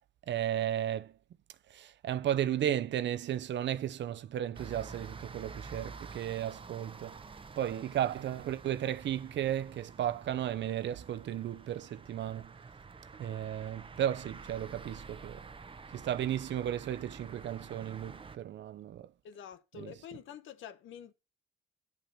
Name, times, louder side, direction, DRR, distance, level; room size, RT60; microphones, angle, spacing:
voice 1, 0.3-1.1 1.7-7.1 7.6-12.5 13.2-15.4 15.9-19.1 19.8-19.9, right 11 dB, 65° right, 0.8 m, -34 dB
sound 1, 4.5-18.4, right 4 dB, 25° right, 0.8 m, -49 dB
voice 2, 19.2-21.1, left 9 dB, 75° left, 1.1 m, -47 dB
10.5 x 6.1 x 5.6 m
cardioid pair, 90°, 20 cm